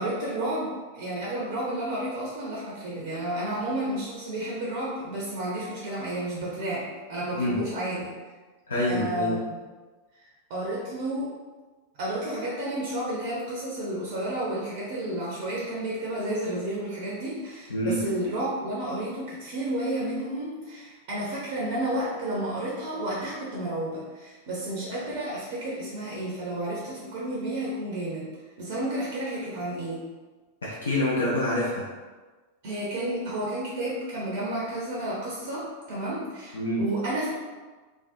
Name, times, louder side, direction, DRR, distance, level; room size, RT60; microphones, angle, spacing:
voice 1, 0.0-8.1 8.9-9.6 10.1-11.3 12.0-28.3 28.6-30.1 32.6-37.3, right 1 dB, 50° right, -5 dB, 0.5 m, -31 dB
voice 2, 8.7-9.3 17.7-18.0 30.6-31.8 36.5-36.8, left 1 dB, 70° left, -6 dB, 0.4 m, -26 dB
2.5 x 2.1 x 2.4 m, 1.3 s
figure-of-eight pair, 90°, 0 cm